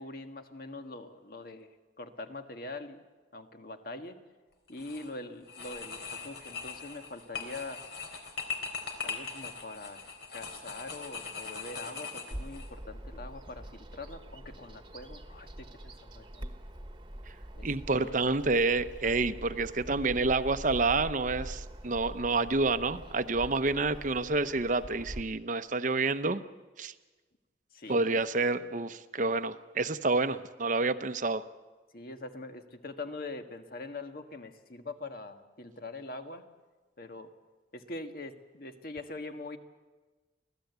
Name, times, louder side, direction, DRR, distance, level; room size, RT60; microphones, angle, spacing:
voice 1, 0.0-1.7 2.0-3.0 3.3-4.2 4.7-7.8 9.0-10.0 10.3-16.4 17.5-18.2 27.7-28.2 31.9-36.4 37.0-37.3 37.7-39.6, left 2 dB, 55° left, 6 dB, 1.6 m, -43 dB
sound 1, 4.7-5.1 5.5-12.7, left 5 dB, 70° left, 3.8 m, -40 dB
Bird vocalization bird call bird song, 12.3-25.2, right 1 dB, 25° right, 1.3 m, -44 dB
voice 2, 17.6-26.4 26.8-26.9 27.9-31.4, right 3 dB, 45° right, 11 dB, 0.8 m, -28 dB
25.0 x 16.5 x 8.2 m, 1.3 s
head